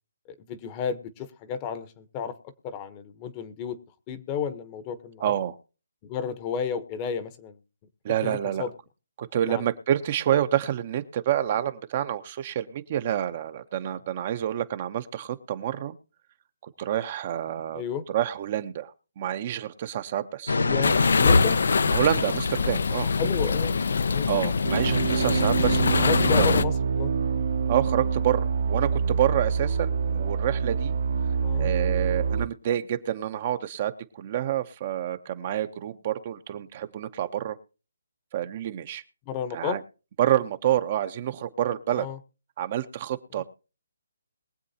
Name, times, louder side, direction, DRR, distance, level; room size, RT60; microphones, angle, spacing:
voice 1, 0.3-2.3 2.6-3.8 4.1-5.3 6.0-7.6 8.2-8.7 9.4-9.7 17.7-18.0 20.6-21.6 23.2-23.8 24.1-24.3 25.8-27.1 31.4-31.7 39.3-39.8 41.9-42.2 43.4-43.5, left 7 dB, 20° left, 10 dB, 0.9 m, -32 dB
voice 2, 5.2-5.5 8.0-8.7 9.2-15.9 16.6-17.8 18.1-20.6 21.9-23.1 24.3-26.1 26.4-26.6 27.7-31.0 31.5-37.6 38.3-39.0 39.5-39.8 40.2-42.1 42.6-43.4, right 11 dB, 35° right, 10 dB, 0.7 m, -28 dB
sound 1, 20.5-23.4 23.7-23.8, left 3 dB, 85° left, 0.9 m, -27 dB
sound 2, 20.8-26.6, left 4 dB, 65° left, 0.6 m, -23 dB
sound 3, 24.6-32.5, right 6 dB, 60° right, 1.1 m, -26 dB
22.0 x 7.7 x 2.8 m, 0.34 s
hypercardioid pair, 160°, 0 cm